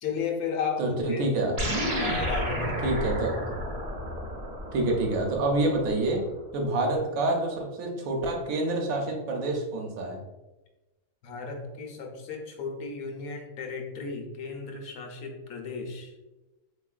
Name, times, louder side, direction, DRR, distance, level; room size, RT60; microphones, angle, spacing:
voice 1, 0.0-1.2 1.9-3.0 11.2-16.1, left 5 dB, 85° left, 2 dB, 1.1 m, -34 dB
voice 2, 0.8-1.5 2.8-3.3 4.7-6.3 6.5-10.2, right 2 dB, 75° right, 1 dB, 1.1 m, -27 dB
sound 1, 1.6-6.2, equal, 40° right, 0.6 m, -32 dB
3.7 x 3.0 x 2.3 m, 1.1 s
omnidirectional pair, 1.5 m